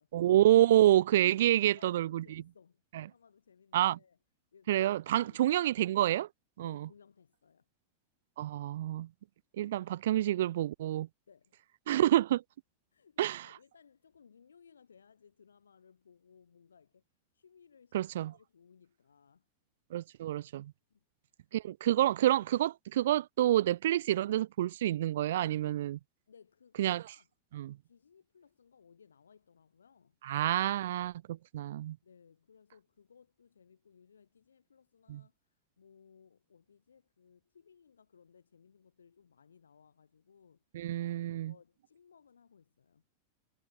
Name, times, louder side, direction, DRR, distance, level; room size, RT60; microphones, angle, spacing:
voice 1, 0.1-2.4 2.9-3.0 3.7-4.0 4.7-6.3 6.6-6.8 8.4-9.1 9.6-11.1 11.9-12.4 13.2-13.5 17.9-18.3 19.9-20.7 21.5-26.0 26.8-27.0 27.5-27.8 30.2-32.0 35.1-35.2 40.7-41.5, right 13 dB, 60° right, 0.6 m, -28 dB
voice 2, 1.1-4.2 4.5-5.9 6.6-7.7 11.3-11.6 12.9-17.0 17.3-19.5 20.9-21.0 26.3-27.3 27.8-30.2 32.0-40.6 41.3-43.0, left 6 dB, 70° left, 7.7 m, -62 dB
figure-of-eight pair, 90°, 0 cm